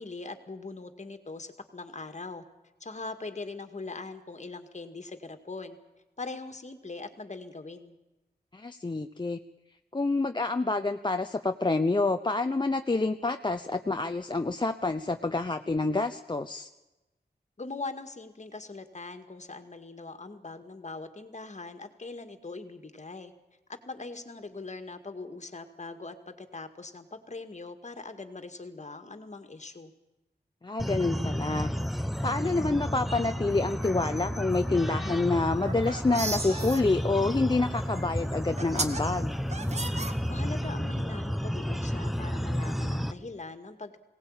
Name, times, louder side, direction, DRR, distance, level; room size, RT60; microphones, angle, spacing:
voice 1, 0.0-2.4 2.8-5.8 6.2-8.0 17.6-23.3 23.7-29.9 40.3-44.0, left 3 dB, 45° left, 8 dB, 2.0 m, -41 dB
voice 2, 8.5-9.4 9.9-16.7 30.6-31.7 32.0-39.3, left 3 dB, 25° left, 6 dB, 0.7 m, -28 dB
sound 1, 30.8-43.1, equal, ahead, 1.0 m, -32 dB
sound 2, 35.5-36.8 38.0-38.1 38.6-39.0 39.5-40.6, right 3 dB, 40° right, 1.6 m, -34 dB
Gong, 36.3-38.9, right 3 dB, 75° right, 5.1 m, -46 dB
21.5 x 18.0 x 8.9 m, 1.0 s
wide cardioid pair, 105°, 17 cm